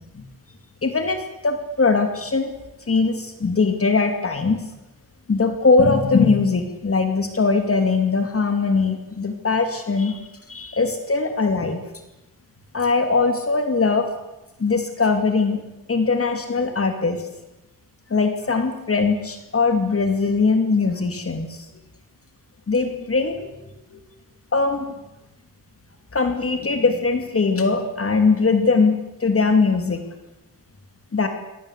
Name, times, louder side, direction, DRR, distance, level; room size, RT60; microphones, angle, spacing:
voice 1, 0.8-2.5 2.9-4.6 5.3-10.2 10.5-11.8 12.7-14.1 14.6-15.6 15.9-17.3 18.1-21.7 22.7-23.5 23.9-24.0 24.5-24.9 26.1-30.0 31.1-31.3, left 4 dB, 35° left, 6 dB, 2.6 m, -21 dB
25.0 x 17.5 x 8.3 m, 0.97 s
wide cardioid pair, 115°, 38 cm